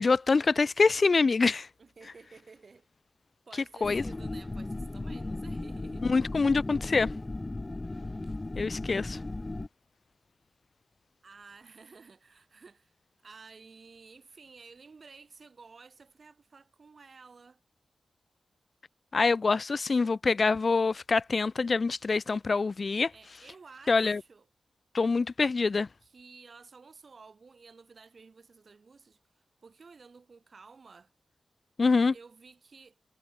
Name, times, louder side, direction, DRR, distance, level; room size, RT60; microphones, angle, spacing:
voice 1, 0.0-1.7 3.8-4.0 6.1-7.1 8.6-9.2 19.1-23.1 23.9-24.2 24.9-25.9 31.8-32.1, left 4 dB, 40° left, 0.5 m, -25 dB
voice 2, 1.8-2.9 3.5-6.1 11.2-12.9 13.2-17.6 23.1-24.4 26.0-29.2 29.6-31.1 32.1-32.9, right 4 dB, 45° right, 7.9 m, -53 dB
sound 1, 3.8-9.7, left 2 dB, 20° left, 4.7 m, -36 dB
wide cardioid pair, 120°, 0 cm